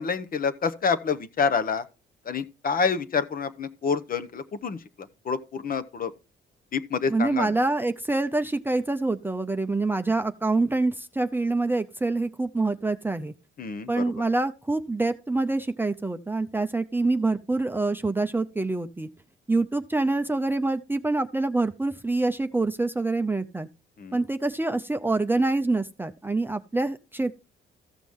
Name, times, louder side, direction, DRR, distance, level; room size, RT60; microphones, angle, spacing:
voice 1, 0.0-1.8 2.2-6.1 6.7-7.5 13.6-14.0 24.0-24.2, left 5 dB, 45° left, 1.0 m, -28 dB
voice 2, 7.1-13.3 13.9-19.1 19.5-23.7 24.1-27.3, right 2 dB, 10° right, 0.6 m, -26 dB
14.5 x 6.1 x 3.6 m
cardioid pair, 90°, 20 cm